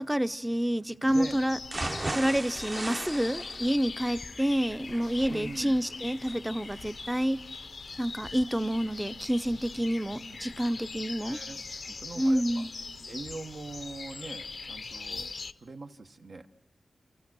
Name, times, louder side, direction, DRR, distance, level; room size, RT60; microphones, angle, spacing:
voice 1, 0.0-7.4 8.0-11.4 12.2-12.7, equal, 5° right, 0.6 m, -28 dB
voice 2, 1.0-1.5 5.3-5.7 10.3-10.4 11.2-12.7 13.1-15.3 15.6-16.5, right 3 dB, 65° right, 1.1 m, -42 dB
sound 1, 1.1-15.5, left 4 dB, 65° left, 0.6 m, -42 dB
sound 2, 1.6-9.6 10.0-10.1 10.5-10.6, right 2 dB, 30° right, 0.9 m, -39 dB
29.5 x 14.5 x 6.1 m
cardioid pair, 55°, 0 cm